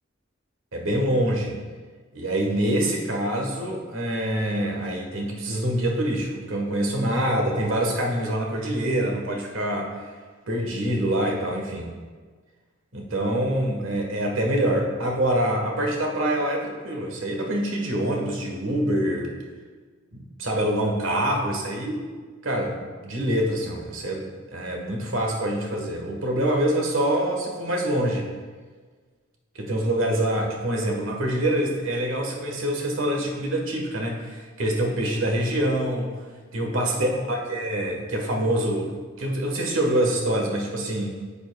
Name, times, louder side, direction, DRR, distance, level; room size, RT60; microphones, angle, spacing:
voice 1, 0.7-1.6 2.1-10.0 10.5-11.9 12.9-19.3 20.1-22.0 22.4-28.3 29.5-36.1 36.5-41.2, right 1 dB, 80° right, 1 dB, 1.3 m, -25 dB
10.0 x 7.3 x 2.3 m, 1.5 s
head